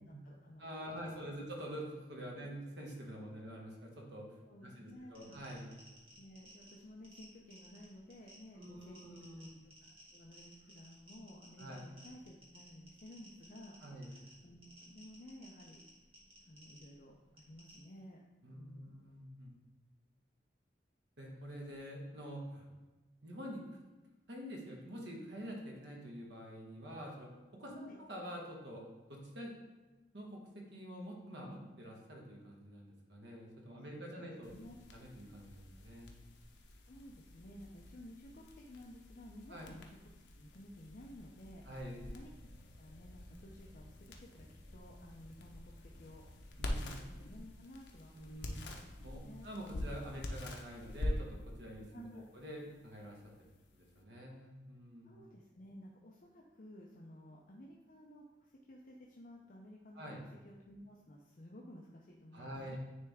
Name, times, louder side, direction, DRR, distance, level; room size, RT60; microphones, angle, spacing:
voice 1, 0.0-1.3 3.2-3.5 4.5-5.5 6.2-9.2 9.6-9.7 10.1-15.8 16.5-18.2 18.5-19.0 27.7-28.0 34.0-34.8 36.8-40.1 40.4-41.6 42.1-42.3 42.8-48.7 49.2-49.5 51.9-52.3 55.0-60.0 60.4-62.8, left 1 dB, 50° left, -2 dB, 0.6 m, -55 dB
voice 2, 0.6-4.3 4.6-5.7 8.5-9.5 11.6-11.8 13.8-14.1 18.4-19.5 21.2-22.7 23.2-23.8 24.3-27.3 27.6-28.8 29.1-29.5 30.1-34.5 34.9-36.2 39.5-39.7 41.7-42.0 46.6-47.0 48.1-48.6 49.0-53.2 53.7-55.2 59.9-60.2 62.3-62.8, equal, 80° right, -1 dB, 1.3 m, -47 dB
sound 1, 4.9-17.8, equal, 30° right, 1.8 m, -60 dB
sound 2, 34.4-54.0, left 1 dB, 80° left, 0.8 m, -46 dB
9.4 x 3.4 x 3.5 m, 1.2 s
head